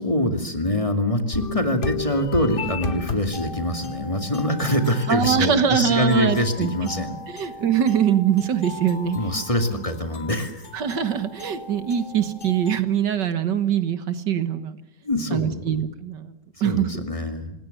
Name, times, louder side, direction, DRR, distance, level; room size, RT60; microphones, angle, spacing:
voice 1, 0.0-7.2 9.1-10.7 15.0-15.6 16.6-17.5, left 1 dB, 20° left, 5 dB, 2.4 m, -24 dB
sound 1, 1.3-12.8, left 4 dB, 35° left, 1.3 m, -35 dB
voice 2, 5.1-6.7 7.3-9.2 9.7-9.8 10.7-14.8 15.3-16.3 16.6-17.0, right 8 dB, 80° right, 11 dB, 2.1 m, -23 dB
27.0 x 19.5 x 6.7 m, 0.94 s
omnidirectional pair, 1.9 m